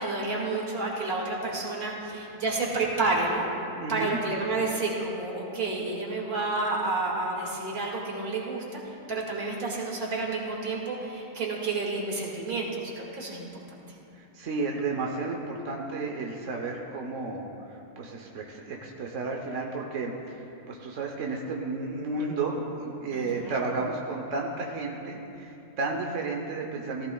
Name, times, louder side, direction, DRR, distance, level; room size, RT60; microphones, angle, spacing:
voice 1, 0.0-3.5 3.9-13.6 23.1-23.6, right 3 dB, 80° right, -3 dB, 2.7 m, -30 dB
voice 2, 3.8-4.2 14.1-27.1, right 3 dB, 60° right, 0 dB, 1.2 m, -32 dB
17.5 x 15.5 x 2.3 m, 2.8 s
omnidirectional pair, 1.5 m